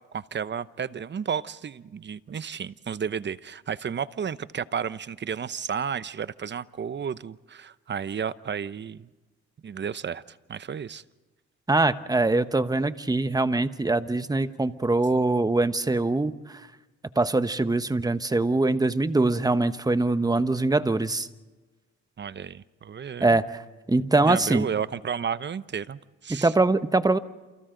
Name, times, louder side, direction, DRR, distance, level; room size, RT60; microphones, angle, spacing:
voice 1, 0.1-9.1 9.6-11.0 22.2-23.4 24.0-26.5, right 7 dB, 35° right, 15 dB, 0.8 m, -32 dB
voice 2, 11.7-16.6 17.2-21.3 23.2-23.6 23.9-24.7 26.3-27.2, right 2 dB, 10° right, 11 dB, 1.1 m, -23 dB
29.0 x 28.5 x 3.9 m, 1.2 s
cardioid pair, 90°, 30 cm